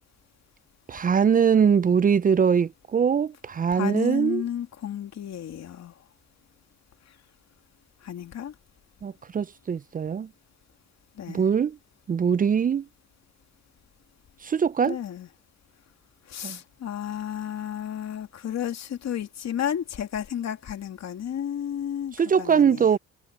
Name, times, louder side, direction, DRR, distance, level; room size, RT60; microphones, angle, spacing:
voice 1, 0.9-4.4 9.0-10.3 11.3-11.8 12.1-12.9 14.4-15.0 16.4-16.6 22.1-23.0, right 7 dB, 30° right, 0.4 m, -22 dB
voice 2, 3.7-5.9 8.0-8.5 11.2-11.4 14.9-15.3 16.3-22.9, left 9 dB, 60° left, 2.7 m, -32 dB
cardioid pair, 90°, 30 cm